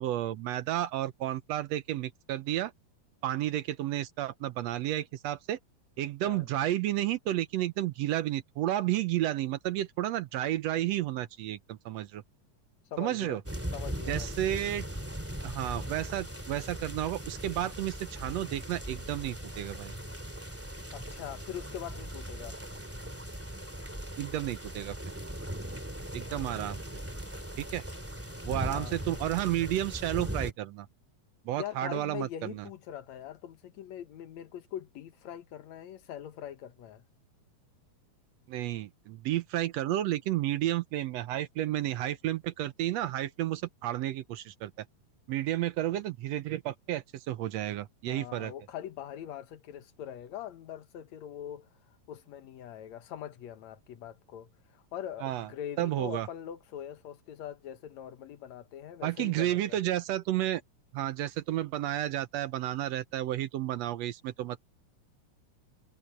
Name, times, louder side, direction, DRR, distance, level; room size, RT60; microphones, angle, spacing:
voice 1, 0.0-2.7 3.2-5.6 6.0-12.2 13.0-13.4 14.1-14.8 15.4-19.9 24.2-25.0 26.1-26.8 27.6-27.8 28.4-30.9 31.4-32.6 38.5-44.7 45.3-48.5 55.2-55.5 55.8-56.3 59.0-60.6 60.9-64.6, right 13 dB, 75° right, 1.7 m, -32 dB
voice 2, 12.9-13.4 13.7-14.4 20.9-22.6 28.6-29.0 31.6-37.0 48.1-51.7 52.1-59.8, left 10 dB, 70° left, 2.5 m, -42 dB
sound 1, 13.5-30.5, equal, 5° right, 2.2 m, -39 dB
omnidirectional pair, 3.4 m